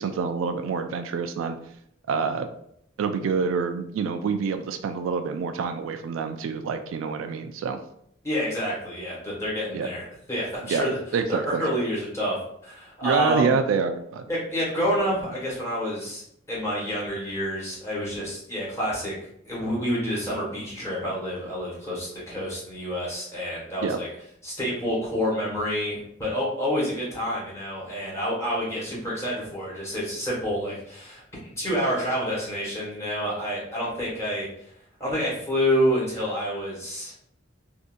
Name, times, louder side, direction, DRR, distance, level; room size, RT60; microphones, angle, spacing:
voice 1, 0.0-1.6 2.1-2.5 3.0-7.8 9.7-9.9 10.6-10.8 11.1-11.6 13.0-14.2 23.8-24.0, right 5 dB, 90° right, 9 dB, 0.3 m, -26 dB
voice 2, 8.2-10.9 11.3-13.5 14.3-16.2 16.5-19.1 19.4-24.1 24.4-34.5 35.0-37.1, equal, 15° left, -7 dB, 1.5 m, -28 dB
3.7 x 2.6 x 2.5 m, 0.72 s
head